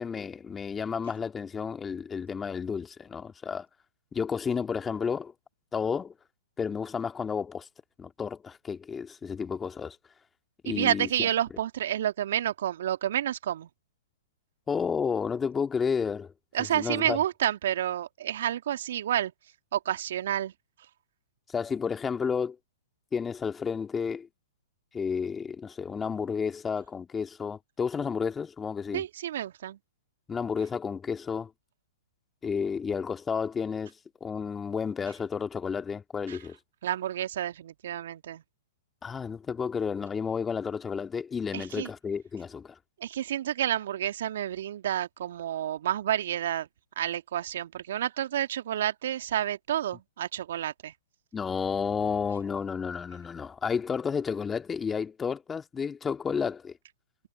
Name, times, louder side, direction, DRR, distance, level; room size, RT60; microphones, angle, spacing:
voice 1, 0.0-3.7 4.1-5.3 5.7-6.1 6.6-7.7 8.0-10.0 10.6-11.3 14.7-16.3 16.7-17.2 21.5-22.6 23.1-24.3 24.9-29.0 30.3-31.5 32.4-33.9 34.2-36.6 39.0-42.8 51.3-56.7, left 6 dB, 15° left, 1.9 m, -31 dB
voice 2, 10.7-13.7 16.5-19.3 19.7-20.5 28.9-29.8 36.3-36.4 36.8-38.4 41.5-41.9 43.0-46.7 47.0-50.9, right 11 dB, 60° right, 1.8 m, -29 dB
figure-of-eight pair, 115°, 0 cm